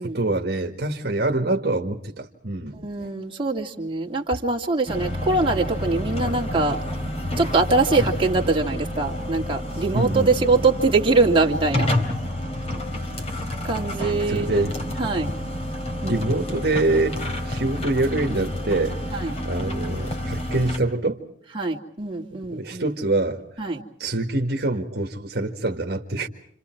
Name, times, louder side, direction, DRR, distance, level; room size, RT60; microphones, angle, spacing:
voice 1, 0.0-3.1 9.9-10.7 14.3-14.8 16.0-17.2 17.5-19.0 19.5-21.2 22.5-23.7 24.0-26.3, right 2 dB, 60° right, 3 dB, 1.9 m, -25 dB
voice 2, 2.7-6.8 7.4-11.9 13.6-14.6 15.0-15.3 16.0-16.2 19.1-19.3 21.5-22.8 23.6-23.8, right 3 dB, 30° right, 0 dB, 2.6 m, -23 dB
sound 1, 4.9-20.8, left 1 dB, 35° left, 3.8 m, -29 dB
29.0 x 27.5 x 4.6 m, 0.69 s
head